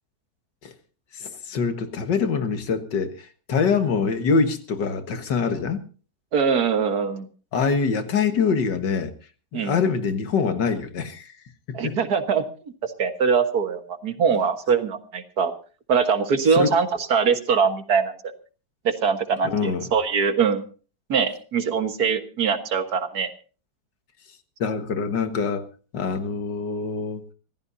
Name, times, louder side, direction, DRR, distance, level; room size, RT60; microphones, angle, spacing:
voice 1, 1.1-5.8 7.5-9.1 9.5-11.3 11.8-12.0 16.5-16.7 19.5-19.9 24.6-25.7 25.9-27.3, left 5 dB, 85° left, 2.1 m, -24 dB
voice 2, 6.3-7.3 9.5-9.7 11.7-12.4 12.8-15.5 15.9-18.1 18.8-20.6 21.1-23.3, right 6 dB, 65° right, 1.9 m, -22 dB
25.5 x 15.0 x 2.7 m
omnidirectional pair, 1.8 m